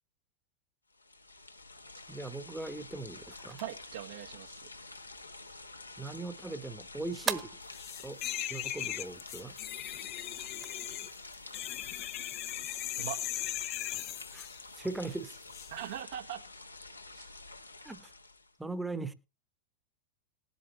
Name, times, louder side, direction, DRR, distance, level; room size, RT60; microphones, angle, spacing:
sound 1, 0.9-18.5, left 3 dB, 85° left, 1.1 m, -49 dB
voice 1, 2.1-3.6 6.0-7.6 8.0-8.2 8.5-9.6 14.3-14.5 14.7-15.4 17.8-18.1 18.6-19.1, right 2 dB, 5° right, 1.1 m, -39 dB
sound 2, 2.9-12.7, right 6 dB, 25° right, 1.3 m, -46 dB
voice 2, 3.6-4.7 13.0-13.2 15.7-16.4 17.1-17.4, right 11 dB, 55° right, 1.1 m, -41 dB
sound 3, 7.7-14.6 15.5-15.7, left 14 dB, 35° left, 0.6 m, -38 dB
19.5 x 8.2 x 3.1 m
figure-of-eight pair, 90°, 0 cm